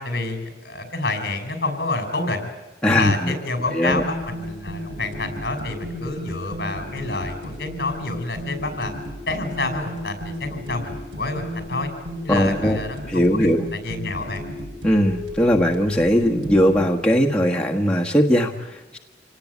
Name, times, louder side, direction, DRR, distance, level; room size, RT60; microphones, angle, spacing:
voice 1, 0.0-2.5 2.9-8.9 9.3-11.9 12.2-14.4, left 2 dB, 55° left, 8 dB, 5.5 m, -28 dB
voice 2, 2.8-3.3 3.7-4.0 12.3-12.8 13.1-13.7 14.8-19.0, equal, 5° left, -1 dB, 1.5 m, -19 dB
sound 1, 4.0-16.9, equal, 85° right, 7.0 m, -34 dB
27.5 x 18.5 x 9.6 m, 1.1 s
head